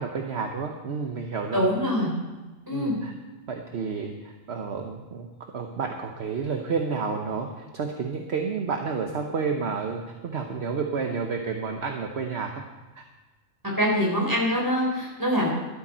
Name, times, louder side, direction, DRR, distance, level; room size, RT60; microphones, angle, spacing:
voice 1, 0.0-1.6 2.7-3.1 3.5-5.3 5.5-12.5 13.0-13.1, right 5 dB, 55° right, 3 dB, 1.2 m, -30 dB
voice 2, 1.5-2.1 2.7-2.9 13.8-15.5, equal, 15° right, -3 dB, 4.1 m, -24 dB
13.0 x 12.5 x 4.3 m, 1.2 s
omnidirectional pair, 1.4 m